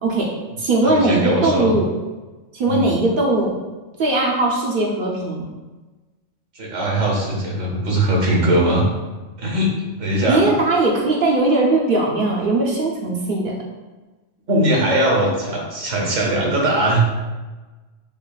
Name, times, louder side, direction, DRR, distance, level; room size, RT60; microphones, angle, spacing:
voice 1, 0.0-0.3 0.6-1.9 2.5-3.5 4.0-5.4 10.3-13.6, right 2 dB, 55° right, -2 dB, 0.6 m, -19 dB
voice 2, 0.8-1.8 2.7-2.9 6.5-8.9 9.4-9.7 10.0-10.5 14.5-17.0, right 1 dB, 80° right, -2 dB, 1.3 m, -20 dB
5.4 x 2.4 x 2.3 m, 1.2 s
omnidirectional pair, 1.3 m